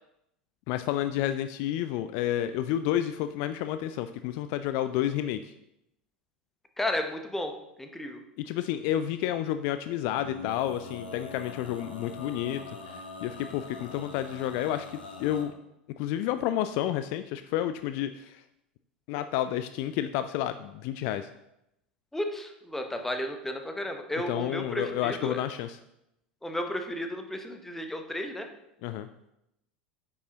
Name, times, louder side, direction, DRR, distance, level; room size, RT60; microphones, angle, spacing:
voice 1, 0.7-5.5 8.4-15.5 16.0-18.4 19.1-21.3 24.3-25.8 28.8-29.1, left 12 dB, 50° left, 10 dB, 0.3 m, -30 dB
voice 2, 6.8-8.2 22.1-25.4 26.4-28.5, left 1 dB, 5° left, 5 dB, 0.9 m, -33 dB
Male singing, 10.1-15.5, left 3 dB, 75° left, 1.0 m, -43 dB
9.3 x 6.1 x 2.9 m, 0.83 s
figure-of-eight pair, 80°, 5 cm